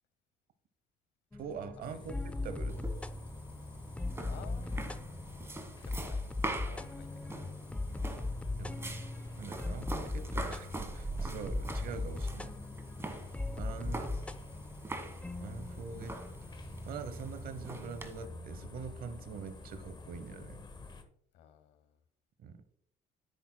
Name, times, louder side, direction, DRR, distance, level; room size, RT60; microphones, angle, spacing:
sound 1, 1.3-17.6, left 2 dB, 10° left, 0.4 m, -39 dB
voice 1, 1.4-2.1 2.4-2.8 8.6-9.0 9.4-12.6 13.6-14.1 15.4-16.2 16.9-20.6 22.4-22.6, right 6 dB, 60° right, 11 dB, 0.9 m, -44 dB
sound 2, 1.8-21.0, left 3 dB, 25° left, 1.1 m, -49 dB
sound 3, 2.7-18.3, right 2 dB, 15° right, 1.3 m, -44 dB
voice 2, 4.2-5.1 5.7-6.3 6.6-7.3 14.1-14.4 21.3-22.0, left 9 dB, 80° left, 12 dB, 1.0 m, -55 dB
10.0 x 8.7 x 2.2 m, 0.64 s
cardioid pair, 110°, 17 cm